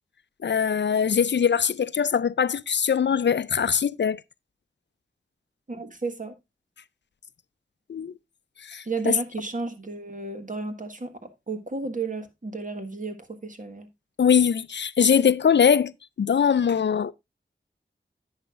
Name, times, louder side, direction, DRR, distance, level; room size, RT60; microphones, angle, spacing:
voice 1, 0.4-4.2 7.9-8.1 8.6-9.2 14.2-15.9 16.2-17.1, left 7 dB, 65° left, 0.4 m, -22 dB
voice 2, 5.7-6.3 8.8-13.9, right 4 dB, 40° right, 1.6 m, -33 dB
10.5 x 8.8 x 2.4 m
wide cardioid pair, 70°, 20 cm